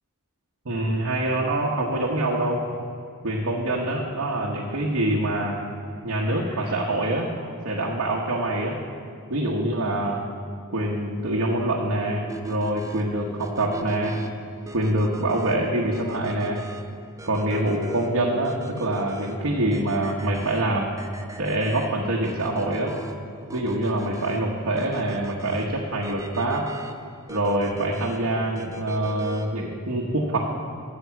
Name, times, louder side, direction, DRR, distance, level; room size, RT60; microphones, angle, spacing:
voice 1, 0.6-2.6 3.2-5.5 6.0-7.3 7.6-8.8 9.3-10.2 10.7-14.2 14.7-16.6 17.2-20.9 21.4-22.9 23.5-26.6 27.3-30.4, right 1 dB, 65° right, -3 dB, 1.1 m, -25 dB
Cough, 6.2-7.6 8.0-8.6, left 1 dB, 20° left, 2.2 m, -45 dB
sound 1, 12.3-29.7, right 1 dB, 15° right, 0.5 m, -41 dB
9.2 x 7.0 x 7.1 m, 2.5 s
head